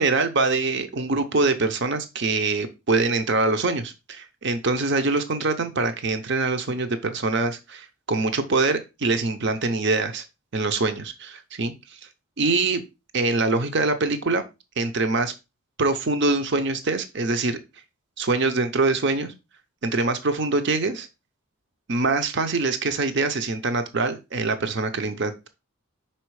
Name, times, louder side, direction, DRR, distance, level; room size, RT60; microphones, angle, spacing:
voice 1, 0.0-10.2 10.5-12.0 12.4-12.8 13.1-14.5 14.8-15.3 15.8-17.6 18.2-19.3 19.8-21.1 21.9-25.5, right 3 dB, 50° right, 9 dB, 0.7 m, -24 dB
5.8 x 4.4 x 4.7 m, 0.26 s
head